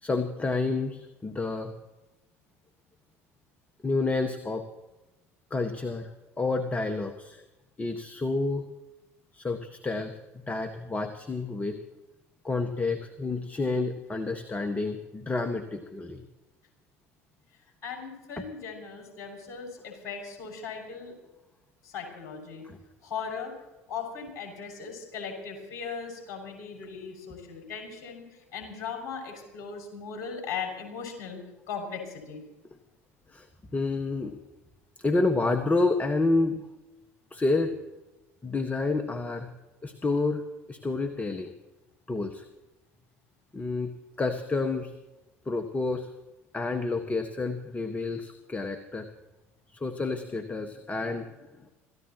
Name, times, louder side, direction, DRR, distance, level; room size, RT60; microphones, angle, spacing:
voice 1, 0.0-1.7 3.8-4.6 5.5-6.1 6.4-7.4 7.8-8.6 9.3-10.2 10.5-11.8 12.4-16.2 22.6-22.8 33.3-33.5 33.7-34.4 35.0-36.6 37.3-37.7 38.4-39.5 39.8-41.5 42.1-42.4 43.5-43.9 44.2-44.9 45.4-46.1 46.5-49.1 49.8-51.3, left 3 dB, 20° left, 7 dB, 1.6 m, -29 dB
voice 2, 17.8-21.2 21.8-22.6 23.0-23.5 23.9-31.4 31.7-32.4, left 6 dB, 55° left, 2 dB, 6.6 m, -38 dB
27.5 x 14.5 x 3.1 m, 1.0 s
hypercardioid pair, 70°, 8 cm